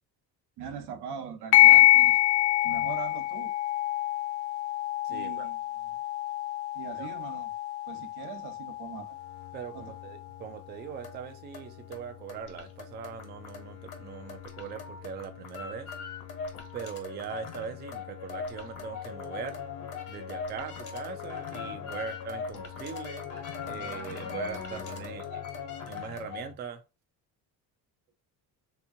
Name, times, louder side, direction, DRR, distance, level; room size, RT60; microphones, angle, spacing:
voice 1, 0.6-2.2 2.6-3.5 5.1-5.6 6.7-7.5 7.9-9.2 9.7-9.9 25.0-25.4, right 7 dB, 85° right, 0.9 m, -41 dB
sound 1, 1.5-10.5, left 16 dB, 90° left, 0.6 m, -25 dB
voice 2, 5.0-5.5 7.0-7.1 9.5-15.9 16.7-19.6 20.1-23.2 23.6-25.2 25.9-26.8, right 7 dB, 30° right, 0.4 m, -41 dB
sound 2, 9.1-26.5, left 6 dB, 55° left, 1.3 m, -40 dB
3.5 x 2.9 x 2.5 m
cardioid pair, 155°, 38 cm